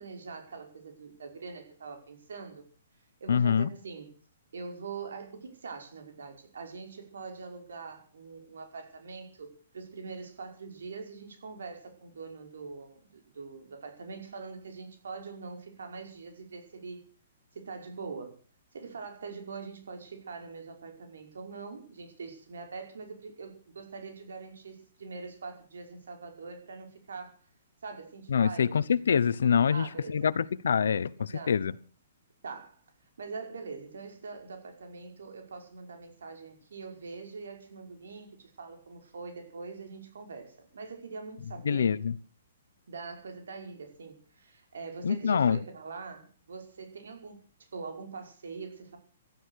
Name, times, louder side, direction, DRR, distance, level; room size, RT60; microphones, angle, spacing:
voice 1, 0.0-2.7 3.2-4.2 4.5-17.0 17.5-18.4 18.7-27.4 27.8-28.9 29.7-30.3 31.2-31.6 32.4-32.8 33.2-41.9 42.9-47.4 47.7-49.0, right 4 dB, 80° right, 5 dB, 5.4 m, -43 dB
voice 2, 3.3-3.7 28.3-31.7 41.6-42.2 45.0-45.6, left 7 dB, 75° left, 15 dB, 0.8 m, -25 dB
18.0 x 12.0 x 6.4 m, 0.41 s
hypercardioid pair, 180°, 0 cm